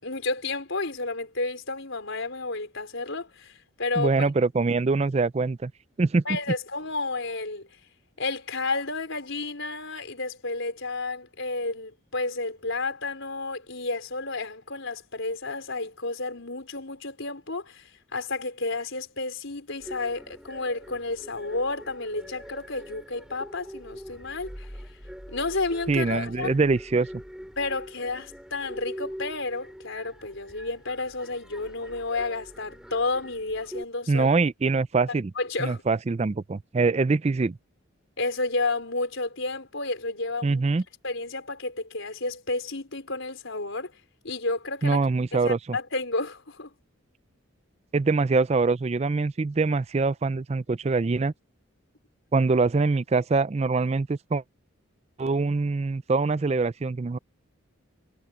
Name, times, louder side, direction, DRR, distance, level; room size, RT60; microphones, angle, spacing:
voice 1, 0.0-4.3 6.2-7.7 8.2-24.7 25.3-26.6 27.6-34.3 35.4-35.8 38.2-40.6 41.0-43.9 44.2-45.0 45.3-46.7, left 3 dB, 65° left, 4.6 m, -31 dB
voice 2, 4.0-5.7 6.0-6.2 25.9-27.1 34.1-35.3 35.6-37.6 40.4-40.8 44.8-45.6 47.9-51.3 52.3-54.4 55.2-57.2, right 3 dB, 30° right, 0.4 m, -24 dB
sound 1, 19.8-33.8, equal, 5° right, 5.2 m, -43 dB
head